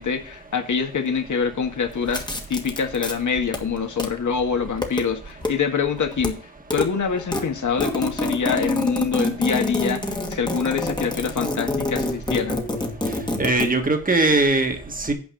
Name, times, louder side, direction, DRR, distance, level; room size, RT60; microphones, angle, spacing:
voice 1, 0.0-2.2 2.5-6.4 6.7-12.6, left 6 dB, 50° left, 5 dB, 1.6 m, -25 dB
sound 1, 2.0-3.1 3.5-4.1 4.7-5.0 5.4-5.5 5.9-6.3 6.6-6.9 7.1-13.7, left 1 dB, 10° left, 1.5 m, -27 dB
voice 2, 13.4-15.1, right 2 dB, 20° right, 5 dB, 1.6 m, -20 dB
8.7 x 5.1 x 6.2 m, 0.40 s
cardioid pair, 105°, 37 cm